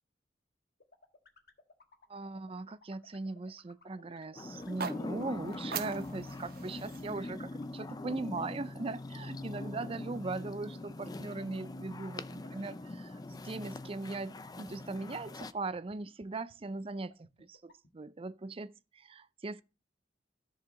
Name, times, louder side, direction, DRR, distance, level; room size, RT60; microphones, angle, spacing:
sound 1, 0.8-17.9, left 3 dB, 60° left, 1.5 m, -59 dB
voice 1, 2.1-19.6, right 3 dB, 30° right, 0.5 m, -40 dB
sound 2, 4.3-15.5, left 2 dB, 20° left, 0.5 m, -42 dB
sound 3, 4.6-8.7, right 6 dB, 55° right, 0.8 m, -44 dB
13.5 x 4.8 x 6.4 m
head